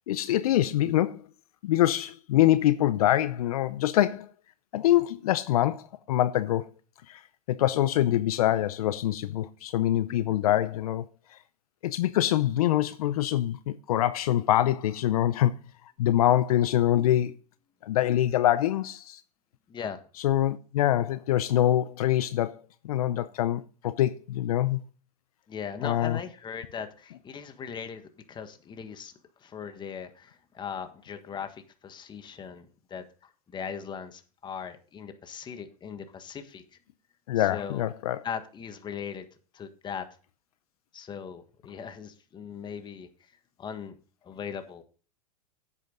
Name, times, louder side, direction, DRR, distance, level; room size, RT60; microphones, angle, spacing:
voice 1, 0.1-1.2 1.6-4.3 4.7-6.7 7.1-7.2 7.5-11.0 11.3-11.4 11.8-15.5 16.0-17.3 17.8-19.2 20.2-22.6 22.8-24.8 25.8-26.2 37.3-38.2, left 13 dB, 70° left, 0.7 m, -24 dB
voice 2, 19.7-20.0 25.5-29.1 29.4-36.6 37.4-37.8 38.2-39.3 39.5-40.1 40.9-43.1 43.6-44.0 44.2-44.8, left 7 dB, 25° left, 1.5 m, -39 dB
10.0 x 8.4 x 3.8 m
hypercardioid pair, 110°, 19 cm